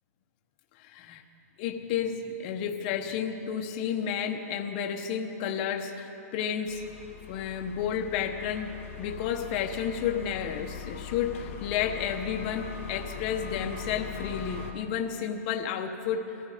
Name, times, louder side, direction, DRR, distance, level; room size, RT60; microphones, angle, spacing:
voice 1, 0.8-1.2 1.6-6.8 7.3-8.7 9.0-16.5, left 8 dB, 35° left, 4 dB, 1.0 m, -31 dB
sound 1, 6.7-14.7, left 7 dB, 50° left, 1.8 m, -41 dB
20.0 x 14.5 x 5.0 m, 2.9 s
hypercardioid pair, 165°, 9 cm